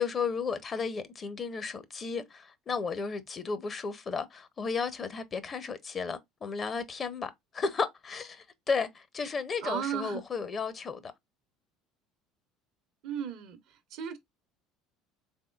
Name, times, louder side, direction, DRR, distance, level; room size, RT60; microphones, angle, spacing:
voice 1, 0.0-11.1, left 5 dB, 35° left, 0.7 m, -34 dB
voice 2, 9.6-10.2 13.0-13.6 13.9-14.2, right 8 dB, 65° right, 0.8 m, -34 dB
3.7 x 3.5 x 2.3 m
hypercardioid pair, 70°, 0 cm